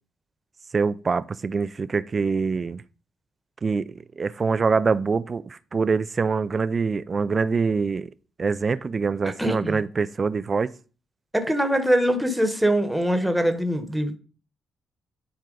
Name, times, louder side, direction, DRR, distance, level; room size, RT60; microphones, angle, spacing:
voice 1, 0.7-2.8 3.6-8.1 8.4-10.7, right 4 dB, 35° right, 0.4 m, -24 dB
voice 2, 9.2-9.8 11.3-14.2, equal, 5° right, 1.1 m, -23 dB
10.5 x 4.5 x 3.9 m
cardioid pair, 90°, 0 cm